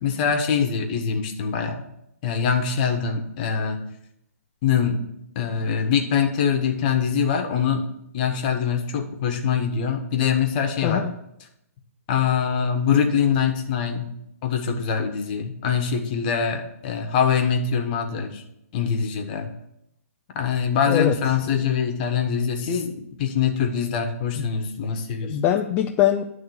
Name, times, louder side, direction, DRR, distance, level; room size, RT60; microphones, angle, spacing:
voice 1, 0.0-1.8 2.2-3.8 4.6-5.0 5.3-7.8 8.1-11.0 12.1-14.1 14.4-18.4 18.7-19.5 20.3-25.4, left 7 dB, 35° left, 4 dB, 1.2 m, -23 dB
voice 2, 10.8-11.1 20.9-21.2 21.5-21.7 25.2-26.2, left 10 dB, 20° left, 3 dB, 0.3 m, -22 dB
10.5 x 3.6 x 7.0 m, 0.80 s
hypercardioid pair, 155°, 8 cm